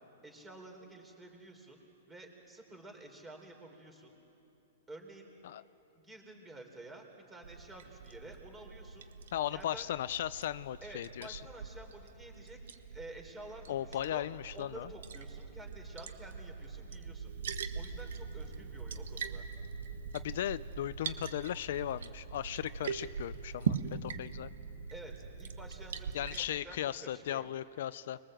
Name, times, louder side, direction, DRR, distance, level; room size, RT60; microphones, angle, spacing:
voice 1, 0.2-1.8 2.1-4.2 4.9-5.3 6.0-9.1 9.4-9.9 10.8-12.6 12.9-14.3 14.5-17.3 17.7-19.4 24.9-27.5, right 2 dB, 10° right, 3 dB, 3.7 m, -51 dB
Liquid, 7.4-26.4, right 6 dB, 75° right, 1.4 m, -42 dB
voice 2, 9.3-11.4 13.7-14.9 20.1-23.8 24.0-24.5 26.1-28.2, left 11 dB, 65° left, 16 dB, 0.5 m, -37 dB
26.5 x 22.0 x 7.8 m, 2.9 s
hypercardioid pair, 150°, 0 cm